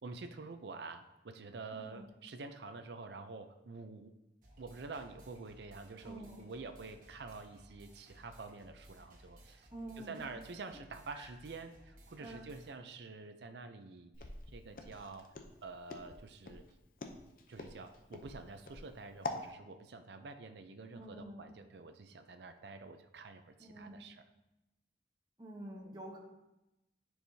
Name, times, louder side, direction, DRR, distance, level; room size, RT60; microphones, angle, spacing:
voice 1, 0.0-4.1 4.6-9.7 10.0-15.4 15.6-16.6 17.5-24.2, right 3 dB, 75° right, 8 dB, 0.5 m, -48 dB
voice 2, 1.7-2.1 6.0-6.4 9.7-10.3 11.1-11.3 12.2-12.5 20.9-21.5 23.6-24.0 25.4-26.2, right 1 dB, 25° right, -1 dB, 1.0 m, -48 dB
sound 1, 4.4-12.8, equal, 50° right, 1.4 m, -60 dB
Walk footsteps, 14.1-19.5, left 2 dB, 50° left, 0.6 m, -45 dB
10.0 x 4.7 x 2.7 m, 0.95 s
head